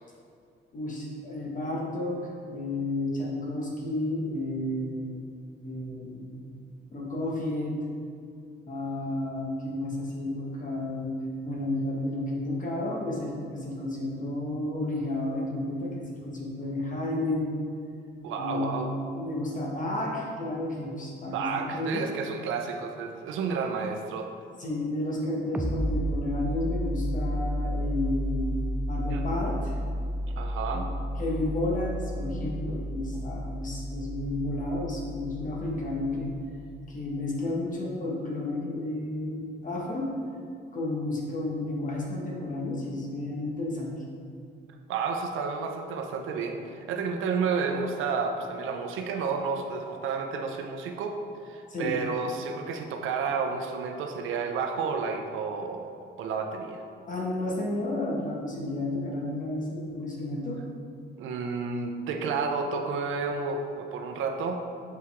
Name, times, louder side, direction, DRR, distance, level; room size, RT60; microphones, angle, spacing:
voice 1, 0.7-5.2 5.6-6.5 6.9-7.8 8.7-11.1 11.4-17.6 18.4-22.1 24.6-28.6 28.9-29.7 30.7-36.3 36.9-40.1 40.7-43.9 51.7-51.9 57.1-60.6, left 1 dB, 40° left, -3 dB, 1.5 m, -32 dB
voice 2, 18.2-18.9 21.3-24.3 29.1-29.2 30.4-30.9 44.9-51.2 51.4-56.8 61.2-64.6, right 5 dB, 85° right, 4 dB, 0.7 m, -31 dB
sound 1, 25.5-36.9, equal, 10° right, 0.5 m, -32 dB
6.9 x 4.8 x 3.5 m, 2.4 s
cardioid pair, 90°, 20 cm